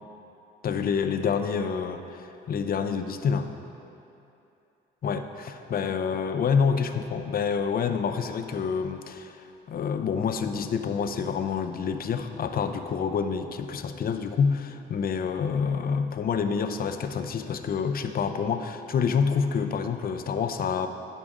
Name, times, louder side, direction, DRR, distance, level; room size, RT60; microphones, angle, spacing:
voice 1, 0.6-3.5 5.0-20.9, left 6 dB, 50° left, 8 dB, 0.5 m, -27 dB
10.0 x 6.0 x 3.7 m, 2.8 s
cardioid pair, 90°, 20 cm